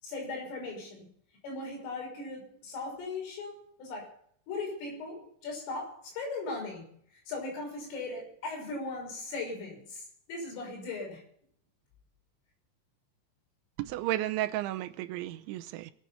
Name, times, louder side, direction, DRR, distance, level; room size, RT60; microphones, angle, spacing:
voice 1, 0.0-1.1 1.4-4.1 4.5-7.0 7.3-11.2, left 3 dB, 85° left, 8.5 m, -38 dB
voice 2, 13.8-15.9, right 14 dB, 80° right, 3.0 m, -33 dB
24.5 x 8.8 x 5.7 m
omnidirectional pair, 5.7 m